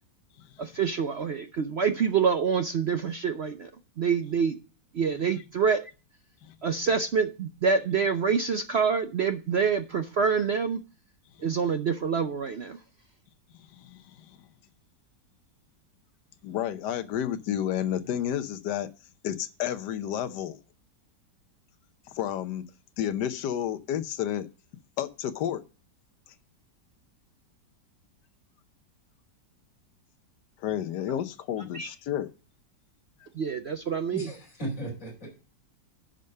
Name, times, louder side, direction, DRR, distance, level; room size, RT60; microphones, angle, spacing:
voice 1, 0.6-3.7 4.0-4.6 4.9-5.8 6.6-10.8 11.4-12.8 31.7-31.9 33.4-34.3, right 6 dB, 60° right, 0.7 m, -26 dB
voice 2, 13.7-14.4 16.4-18.9 19.2-20.6 22.1-22.6 23.0-24.5 25.0-25.6 30.6-32.3, left 10 dB, 75° left, 1.4 m, -31 dB
voice 3, 34.1-35.3, right 1 dB, 45° left, 5.1 m, -36 dB
11.0 x 5.3 x 6.7 m
omnidirectional pair, 1.9 m